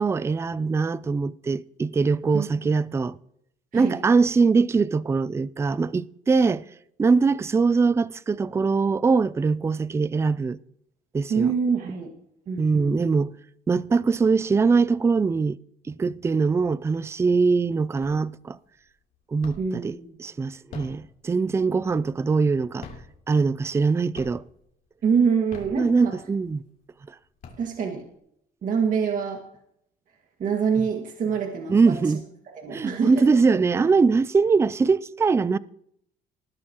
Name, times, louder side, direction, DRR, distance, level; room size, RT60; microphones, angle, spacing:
voice 1, 0.0-3.2 3.7-6.6 7.0-10.6 11.1-11.5 12.6-13.3 13.7-15.6 15.9-18.6 19.3-22.9 23.3-24.4 25.8-26.6 31.7-32.2 32.7-35.6, right 4 dB, 15° right, 0.4 m, -22 dB
voice 2, 11.3-12.1 12.5-13.0 19.6-20.2 25.0-26.2 27.6-28.0 28.6-29.4 30.4-32.2 32.5-33.3, right 6 dB, 50° right, 1.9 m, -25 dB
sound 1, 18.0-18.5 18.9-19.9 20.5-22.3 22.7-23.8 24.1-24.7 25.3-26.4 26.9-27.0 27.2-28.1, left 5 dB, 55° left, 3.2 m, -44 dB
19.5 x 11.0 x 3.0 m
cardioid pair, 110°, 17 cm